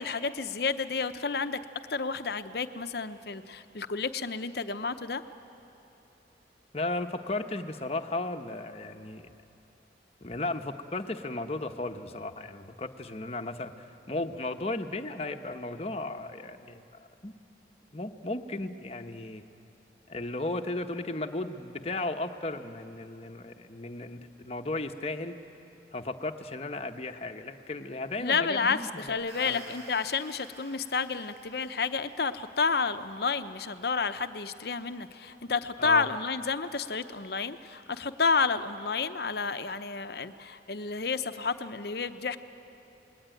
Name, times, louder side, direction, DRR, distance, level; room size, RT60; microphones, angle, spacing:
voice 1, 0.0-1.6 1.9-5.2 28.2-42.4, left 4 dB, 60° left, 10 dB, 0.8 m, -30 dB
voice 2, 6.7-9.3 10.2-16.8 17.2-17.3 17.9-19.4 20.1-25.4 25.9-29.6 35.8-36.1, left 2 dB, 35° left, 6 dB, 1.0 m, -35 dB
sound 1, 29.1-32.3, right 1 dB, 60° right, 7.2 m, -52 dB
29.0 x 20.5 x 9.1 m, 2.9 s
head